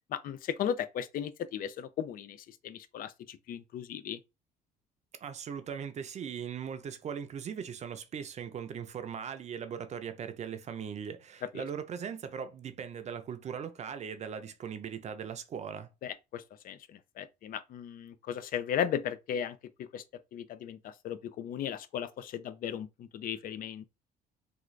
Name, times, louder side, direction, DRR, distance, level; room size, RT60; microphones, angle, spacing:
voice 1, 0.1-4.2 11.5-11.6 16.0-20.0 20.3-23.9, left 9 dB, 55° left, 0.5 m, -36 dB
voice 2, 5.2-15.9, right 7 dB, 40° right, 0.6 m, -39 dB
3.6 x 2.4 x 3.1 m
cardioid pair, 110°, 17 cm